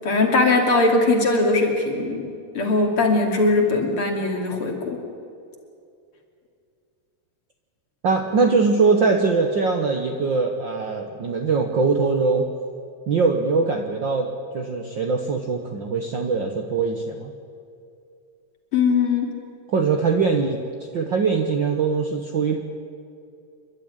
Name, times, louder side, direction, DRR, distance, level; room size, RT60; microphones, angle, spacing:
voice 1, 0.0-2.3 2.5-5.0 18.7-19.3, left 3 dB, 40° left, 2 dB, 3.2 m, -20 dB
voice 2, 8.0-12.5 13.1-17.3 19.7-20.6 20.9-22.6, right 4 dB, 85° right, 3 dB, 1.0 m, -22 dB
28.0 x 12.5 x 9.8 m, 2.5 s
omnidirectional pair, 4.0 m